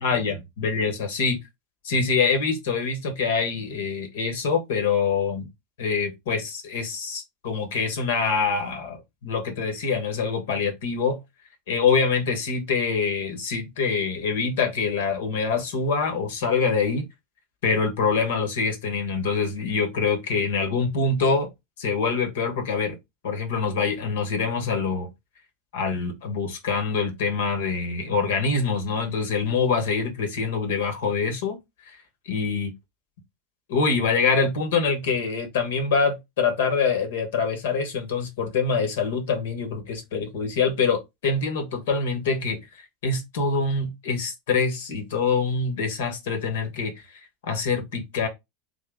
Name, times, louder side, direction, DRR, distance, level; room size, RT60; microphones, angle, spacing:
voice 1, 0.0-1.4 1.8-5.5 5.8-11.2 11.7-17.1 17.6-21.5 21.8-23.0 23.2-25.1 25.7-31.6 31.8-32.0 32.3-32.7 33.7-47.0 47.4-48.3, left 5 dB, 70° left, 1.3 m, -25 dB
3.6 x 3.0 x 3.6 m
hypercardioid pair, 85°, 0 cm